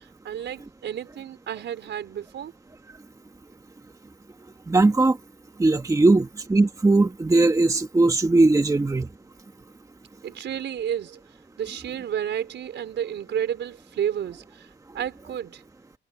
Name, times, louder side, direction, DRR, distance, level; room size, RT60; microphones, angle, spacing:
voice 1, 0.2-2.5 10.2-11.2 11.6-14.7 14.9-15.6, right 9 dB, 65° right, 4.6 m, -31 dB
voice 2, 4.7-5.2 5.6-9.1, right 2 dB, 15° right, 1.4 m, -19 dB
cardioid pair, 90°, 20 cm